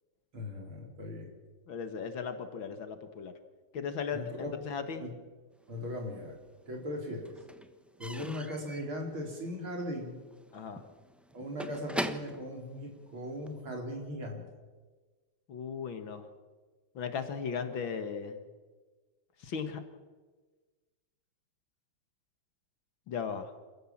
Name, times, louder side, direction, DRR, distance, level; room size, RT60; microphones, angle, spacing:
voice 1, 0.3-1.3 4.1-4.5 5.0-5.1 5.7-6.4 6.7-7.3 8.0-10.2 11.3-14.4, left 1 dB, 75° right, 2 dB, 5.1 m, -38 dB
voice 2, 1.7-3.3 3.7-5.1 10.5-10.8 15.5-16.3 17.0-18.4 19.4-19.8 23.1-23.5, left 6 dB, 70° left, 8 dB, 2.3 m, -37 dB
Slam / Squeak / Wood, 5.7-6.6 6.8-13.6, equal, ahead, 0.5 m, -42 dB
27.0 x 15.0 x 7.4 m, 1.3 s
omnidirectional pair, 2.3 m